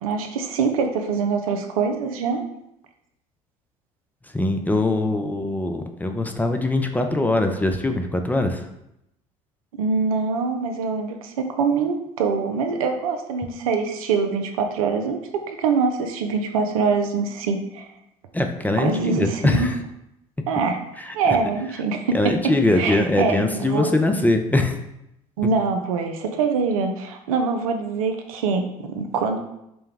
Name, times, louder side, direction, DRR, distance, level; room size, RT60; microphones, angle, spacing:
voice 1, 0.0-2.4 9.7-17.9 18.8-19.7 20.5-20.8 21.1-23.9 25.4-29.4, right 5 dB, 80° right, 5 dB, 0.5 m, -24 dB
voice 2, 4.3-8.7 18.3-19.8 22.1-24.8, left 2 dB, 10° left, 5 dB, 0.5 m, -22 dB
5.3 x 2.2 x 3.4 m, 0.83 s
hypercardioid pair, 60°, 18 cm